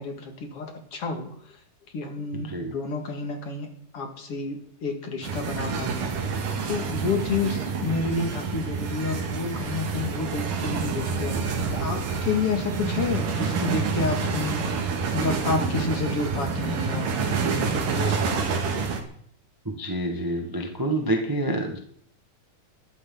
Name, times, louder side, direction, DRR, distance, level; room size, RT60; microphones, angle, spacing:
voice 1, 0.0-1.6 1.9-3.7 3.9-6.3 6.7-17.6 17.9-18.9, left 4 dB, 50° left, 4 dB, 2.8 m, -30 dB
voice 2, 2.3-2.7 19.6-21.8, right 1 dB, 35° right, 2 dB, 0.3 m, -28 dB
sound 1, 5.2-19.0, right 5 dB, 85° right, 3.6 m, -28 dB
21.5 x 13.0 x 3.9 m, 0.65 s
omnidirectional pair, 3.8 m